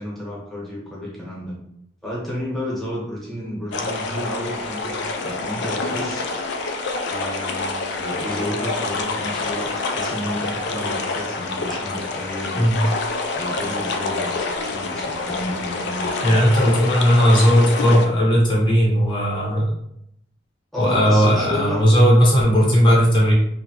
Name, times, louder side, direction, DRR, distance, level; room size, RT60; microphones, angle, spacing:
voice 1, 0.0-1.6 2.0-6.7 7.0-12.7 13.3-16.5 20.7-21.9, equal, ahead, -7 dB, 1.0 m, -31 dB
sound 1, 3.7-18.1, left 3 dB, 65° left, 0.4 m, -27 dB
voice 2, 16.2-19.7 20.8-23.3, equal, 25° left, -5 dB, 0.7 m, -16 dB
2.8 x 2.2 x 2.7 m, 0.75 s
head